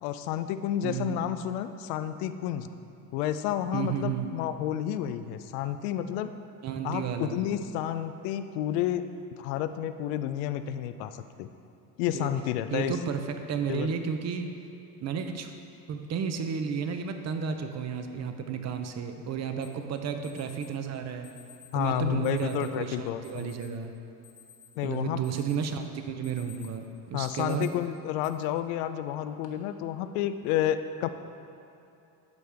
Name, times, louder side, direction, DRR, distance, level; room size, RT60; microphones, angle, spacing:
voice 1, 0.0-2.7 3.1-6.3 6.8-9.1 9.4-11.5 12.0-13.0 13.7-13.9 21.7-23.5 24.8-25.2 27.1-31.1, left 11 dB, 85° left, 11 dB, 0.5 m, -30 dB
voice 2, 0.8-1.2 3.7-4.4 6.6-7.4 12.1-12.3 12.7-14.6 15.0-15.5 15.9-21.3 21.7-23.9 24.8-27.7, right 7 dB, 35° right, 7 dB, 0.7 m, -32 dB
Alarm, 19.6-19.7 20.2-20.7 21.2-21.7 22.2-22.7 23.2-23.7 24.1-24.9 25.2-25.7 26.1-26.8 27.2-27.7 28.2-28.3 29.1-29.5, left 9 dB, 45° left, 1.3 m, -52 dB
12.0 x 4.9 x 3.4 m, 2.8 s
supercardioid pair, 95°, 45 cm